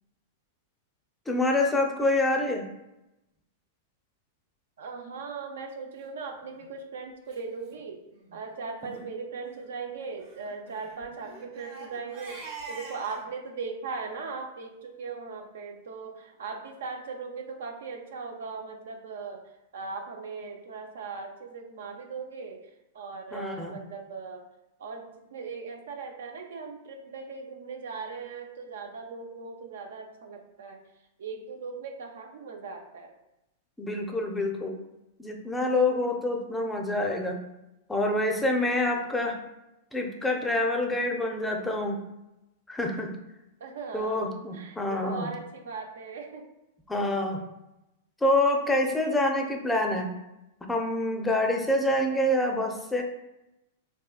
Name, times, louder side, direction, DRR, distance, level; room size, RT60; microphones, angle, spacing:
voice 1, 1.3-2.7 23.3-23.8 33.8-34.8 35.2-37.4 37.9-39.4 39.9-42.0 42.7-43.1 43.9-45.3 46.9-47.4 48.2-50.1 50.7-53.0, left 1 dB, 10° left, 2 dB, 0.5 m, -26 dB
voice 2, 4.8-8.0 8.3-24.5 24.8-30.8 31.2-33.1 38.8-39.2 43.6-46.5, right 4 dB, 70° right, 3 dB, 0.4 m, -39 dB
Crying sobbing, 6.4-6.6 7.3-7.4 7.7-7.8 8.1-8.3 8.8-9.0 10.2-13.3, right 3 dB, 50° right, 0.9 m, -45 dB
3.6 x 2.2 x 2.3 m, 0.92 s
hypercardioid pair, 105°, 0 cm